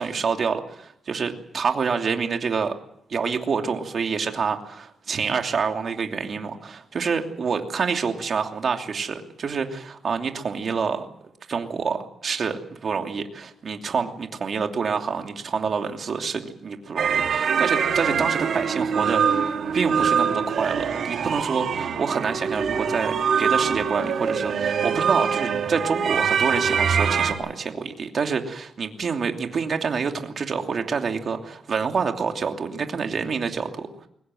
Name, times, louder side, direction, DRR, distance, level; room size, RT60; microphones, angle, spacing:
voice 1, 0.0-2.7 3.1-11.1 11.5-34.1, right 5 dB, 50° right, 4 dB, 2.8 m, -27 dB
sound 1, 17.0-27.3, right 7 dB, 65° right, 2.8 m, -24 dB
23.0 x 19.5 x 7.6 m, 0.73 s
cardioid pair, 125°, 0 cm